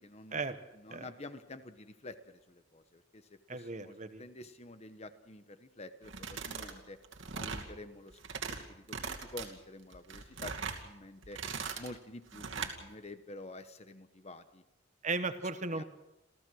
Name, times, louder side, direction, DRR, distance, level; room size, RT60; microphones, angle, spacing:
voice 1, 0.0-0.4 0.7-7.0 7.3-11.4 11.8-14.6 15.7-15.8, left 2 dB, 30° left, 10 dB, 1.1 m, -49 dB
voice 2, 3.5-4.2 15.0-15.8, right 3 dB, 35° right, 10 dB, 1.1 m, -36 dB
sound 1, 6.0-6.7 7.0-7.7 8.1-8.6 8.9-9.5 9.9-10.8 11.2-11.9 12.3-12.8, right 5 dB, 65° right, 2.5 m, -40 dB
28.5 x 15.0 x 6.4 m, 0.94 s
head